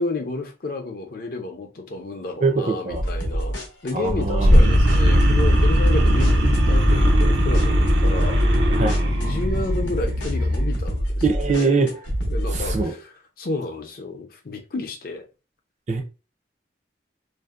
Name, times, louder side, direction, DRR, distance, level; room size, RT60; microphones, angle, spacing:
voice 1, 0.0-8.4 9.0-11.9 12.3-13.1 13.4-15.3, left 2 dB, 50° left, 0.5 m, -31 dB
voice 2, 2.4-3.0 3.9-4.8 8.7-9.1 11.2-12.0 12.5-12.9 15.9-16.0, right 4 dB, 40° right, 0.5 m, -23 dB
sound 1, 2.9-12.8, equal, 90° left, 0.7 m, -26 dB
sound 2, 4.4-10.7, equal, 85° right, 0.6 m, -18 dB
2.6 x 2.0 x 2.3 m
head